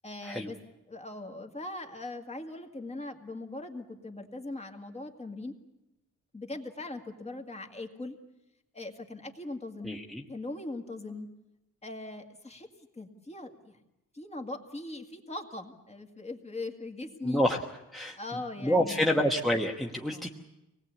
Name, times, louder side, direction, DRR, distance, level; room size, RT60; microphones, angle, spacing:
voice 1, 0.0-0.6 0.9-5.6 6.3-8.2 8.7-10.0 10.3-11.3 11.8-12.7 13.0-13.8 14.1-17.4 18.2-19.1 20.1-20.3, left 2 dB, 20° left, 3 dB, 2.0 m, -40 dB
voice 2, 9.8-10.2 17.2-17.6 17.9-18.2 18.6-20.3, equal, ahead, 0 dB, 1.1 m, -27 dB
25.5 x 19.5 x 8.3 m, 0.94 s
wide cardioid pair, 165°, 30 cm